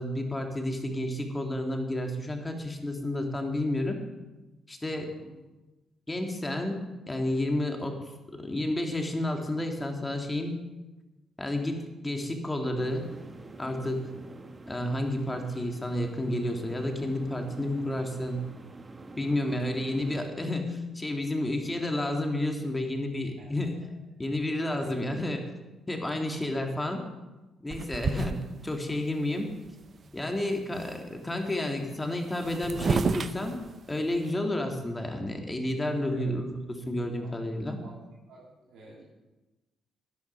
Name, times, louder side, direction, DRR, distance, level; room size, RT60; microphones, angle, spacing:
voice 1, 0.0-4.0 4.7-5.2 6.1-6.8 7.1-8.0 8.3-10.6 11.4-13.1 13.6-14.1 14.7-18.4 19.2-23.8 24.2-25.4 25.9-27.0 27.6-28.4 28.6-29.5 30.1-33.6 33.9-37.8, left 1 dB, 15° left, 3 dB, 2.1 m, -31 dB
voice 2, 5.0-5.4 21.2-21.3 23.3-23.9 24.7-25.2 36.1-36.4 37.2-37.3 37.8-38.0 38.3-39.1, right 2 dB, 85° right, -6 dB, 3.0 m, -50 dB
sound 1, 12.8-20.3, right 2 dB, 25° right, 1.0 m, -46 dB
sound 2, 27.7-28.8 29.4-29.5 29.7-30.2 30.4-31.1 32.0-34.3, right 5 dB, 45° right, 0.5 m, -32 dB
12.0 x 10.5 x 5.5 m, 1.1 s
cardioid pair, 90°, 0 cm